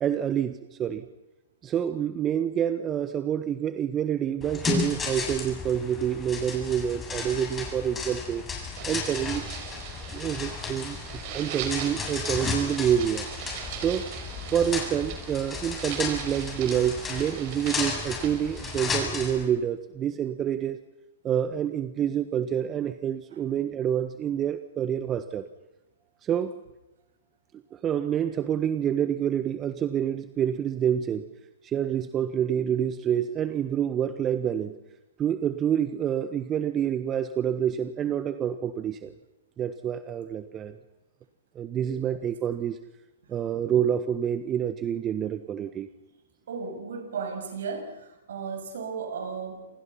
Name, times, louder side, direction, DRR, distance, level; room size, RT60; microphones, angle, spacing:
voice 1, 0.0-1.0 1.6-8.4 8.9-9.6 10.1-13.3 13.8-14.1 14.5-20.8 21.2-25.5 26.2-26.6 27.7-31.3 31.6-34.7 35.2-39.1 39.6-40.8 41.5-42.8 43.3-45.9, right 9 dB, 25° right, 11 dB, 1.4 m, -27 dB
sound 1, 4.4-19.4, left 5 dB, 15° left, 7.9 m, -34 dB
sound 2, 8.7-18.8, right 8 dB, 45° right, 5.7 m, -41 dB
voice 2, 46.5-47.9 48.3-49.6, right 5 dB, 65° right, 4 dB, 8.0 m, -34 dB
30.0 x 27.5 x 5.8 m, 1.0 s
figure-of-eight pair, 110°, 0 cm